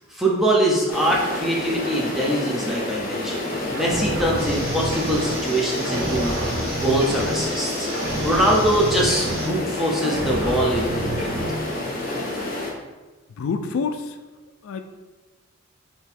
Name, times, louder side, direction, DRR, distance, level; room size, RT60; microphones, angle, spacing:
voice 1, 0.1-6.4 6.7-11.4, right 1 dB, ahead, -4 dB, 0.6 m, -23 dB
sound 1, 0.9-12.7, left 2 dB, 40° left, 0.7 m, -29 dB
sound 2, 3.7-5.6 5.8-7.7 7.9-9.7 10.0-11.7, right 1 dB, 70° right, 1.0 m, -29 dB
sound 3, 4.4-9.4, right 1 dB, 45° right, 1.3 m, -36 dB
voice 2, 13.4-14.2 14.6-14.8, left 5 dB, 70° left, 8 dB, 0.3 m, -26 dB
3.6 x 2.9 x 4.5 m, 1.2 s
head